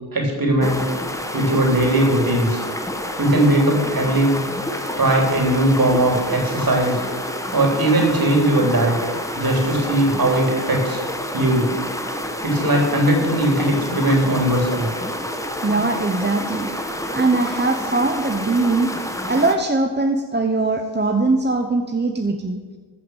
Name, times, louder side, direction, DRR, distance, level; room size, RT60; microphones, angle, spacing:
voice 1, 0.1-0.8 1.3-2.6 3.2-4.4 5.0-7.0 7.5-11.0 11.3-11.7 12.4-14.9, right 1 dB, 50° right, 1 dB, 3.5 m, -19 dB
sound 1, 0.6-19.5, left 1 dB, 5° left, 1.3 m, -29 dB
voice 2, 15.6-16.7 17.1-22.6, right 3 dB, 25° right, 4 dB, 1.0 m, -21 dB
13.5 x 5.8 x 7.3 m, 1.5 s
cardioid pair, 55°, 45 cm